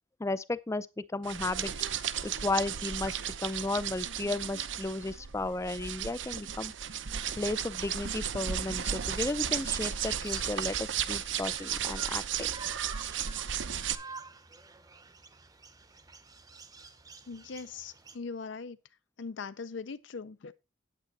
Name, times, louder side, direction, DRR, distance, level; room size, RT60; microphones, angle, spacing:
voice 1, 0.2-1.7 2.2-6.7 7.4-12.5, left 2 dB, 15° left, 0.4 m, -34 dB
sound 1, 1.2-13.9, right 9 dB, 75° right, 0.7 m, -34 dB
sound 2, 9.0-18.2, right 4 dB, 20° right, 0.7 m, -50 dB
voice 2, 17.3-18.8 19.2-20.5, left 4 dB, 70° left, 0.5 m, -40 dB
9.2 x 8.3 x 4.1 m
head